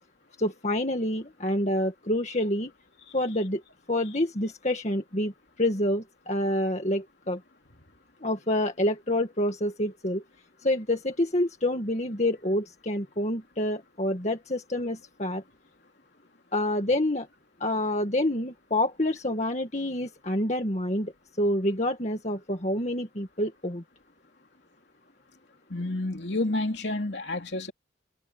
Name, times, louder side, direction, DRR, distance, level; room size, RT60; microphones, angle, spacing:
voice 1, 0.4-2.7 3.1-3.6 3.9-5.3 5.6-7.4 8.2-10.2 10.6-15.4 16.5-17.3 17.6-21.1 21.4-23.8, left 1 dB, 35° left, 2.1 m, -27 dB
voice 2, 25.7-27.7, left 2 dB, 60° left, 3.3 m, -29 dB
head